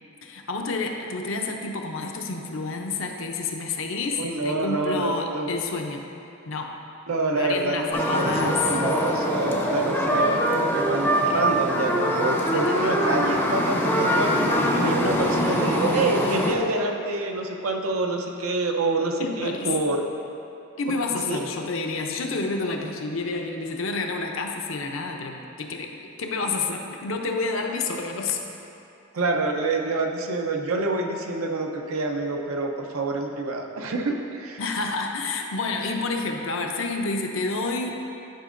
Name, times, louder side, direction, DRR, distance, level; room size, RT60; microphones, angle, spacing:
voice 1, 0.2-6.0 6.5-6.7 7.3-8.6 12.5-13.0 19.2-20.0 20.8-25.9 26.2-28.4 34.6-38.1, left 3 dB, 70° left, 2 dB, 0.6 m, -29 dB
voice 2, 4.2-5.5 7.1-14.3 14.7-20.0 21.3-21.4 29.1-34.6, right 2 dB, 85° right, 2 dB, 0.6 m, -27 dB
sound 1, 7.9-16.5, equal, 10° left, 0.5 m, -23 dB
10.0 x 5.0 x 2.5 m, 2.8 s
head